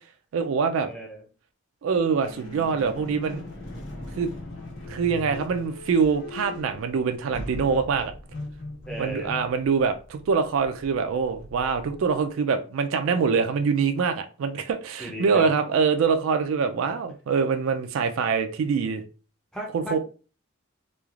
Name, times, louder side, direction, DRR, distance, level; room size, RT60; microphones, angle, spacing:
voice 1, 0.3-0.9 1.8-3.4 4.2-4.3 4.9-8.1 9.0-19.0 19.7-20.0, right 5 dB, 65° right, 0.3 m, -24 dB
voice 2, 0.8-1.2 8.9-9.3 15.0-15.5 19.5-20.0, right 1 dB, 5° left, 0.5 m, -35 dB
sound 1, 2.2-12.3, left 1 dB, 70° left, 1.2 m, -40 dB
3.1 x 2.3 x 2.3 m
head